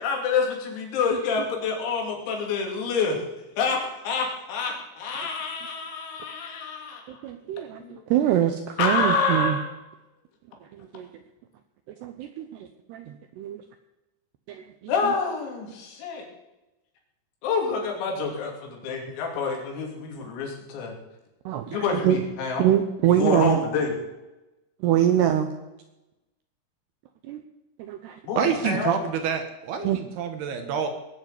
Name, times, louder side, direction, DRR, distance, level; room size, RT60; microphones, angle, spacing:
voice 1, 0.0-3.2 3.6-7.3 7.8-8.0 8.8-9.7 14.9-16.3 17.4-21.0 21.7-22.7 23.2-23.9 28.3-29.0, left 4 dB, 90° left, 1 dB, 5.5 m, -27 dB
voice 2, 7.1-9.6 10.8-11.1 12.0-12.5 12.9-13.6 14.5-14.9 21.5-22.2 22.6-23.6 24.8-25.5 27.3-27.4 27.8-28.2 29.8-30.0, right 11 dB, 85° right, 7 dB, 2.3 m, -24 dB
voice 3, 28.4-30.9, right 7 dB, 70° right, 7 dB, 2.6 m, -27 dB
20.0 x 7.5 x 8.2 m, 0.99 s
omnidirectional pair, 5.9 m